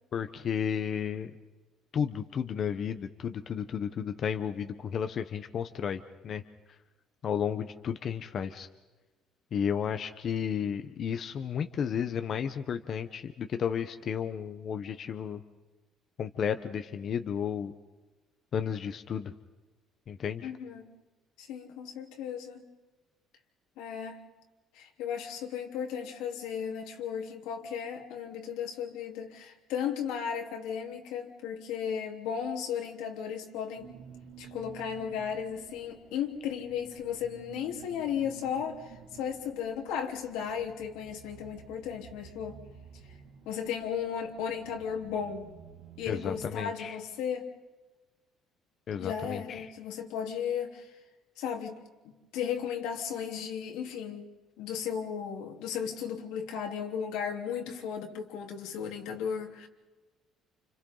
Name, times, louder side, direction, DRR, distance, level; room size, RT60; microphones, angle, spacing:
voice 1, 0.1-1.3 1.9-6.4 7.2-8.7 9.5-15.4 16.2-17.7 18.5-19.3 20.1-20.5 46.1-47.0 48.9-49.7, left 7 dB, 35° left, 8 dB, 0.9 m, -33 dB
voice 2, 20.4-20.8 21.4-22.6 23.8-24.2 24.7-33.9 34.4-42.6 43.4-45.5 46.0-47.5 49.0-50.9 51.4-51.8 52.0-54.3 54.6-59.7, left 8 dB, 90° left, 2 dB, 3.4 m, -35 dB
sound 1, 33.8-46.5, right 7 dB, 60° right, 2.3 m, -52 dB
30.0 x 29.5 x 3.9 m, 1.2 s
cardioid pair, 180°, 0 cm